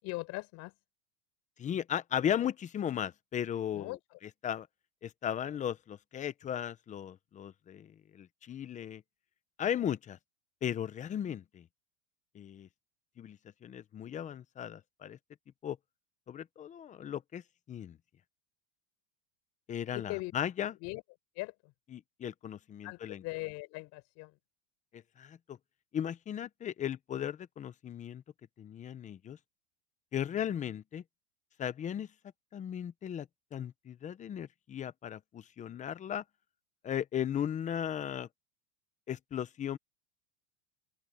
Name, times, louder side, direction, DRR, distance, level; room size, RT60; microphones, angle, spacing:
voice 1, 0.0-0.7 3.7-4.2 19.9-20.3 20.8-21.0 21.3-21.7 22.8-24.4, left 23 dB, 50° left, 4.5 m, -40 dB
voice 2, 1.6-3.9 4.4-4.7 5.0-9.0 9.6-10.2 10.6-11.6 12.3-12.7 13.2-15.2 15.6-15.8 16.3-17.4 17.7-18.0 19.7-20.7 21.9-23.2 24.9-25.6 25.9-28.2 28.6-29.4 30.1-31.0 31.6-32.1 32.5-36.2 36.8-38.3 39.1-39.8, left 9 dB, 20° left, 0.9 m, -36 dB
open air
supercardioid pair, 145°, 35 cm